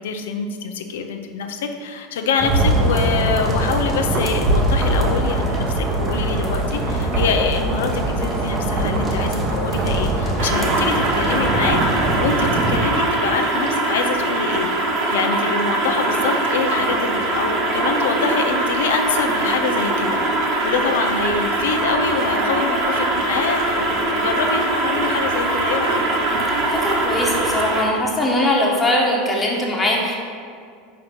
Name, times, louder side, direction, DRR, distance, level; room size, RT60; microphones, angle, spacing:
voice 1, 0.0-14.7 15.1-26.0, left 5 dB, 90° left, 5 dB, 0.6 m, -25 dB
sound 1, 2.4-12.8, right 1 dB, 30° right, 0.9 m, -21 dB
sound 2, 10.4-27.8, right 2 dB, 60° right, 1.1 m, -22 dB
voice 2, 26.7-30.2, left 1 dB, 15° left, -3 dB, 1.2 m, -20 dB
5.1 x 4.3 x 5.9 m, 2.2 s
supercardioid pair, 115°, 0 cm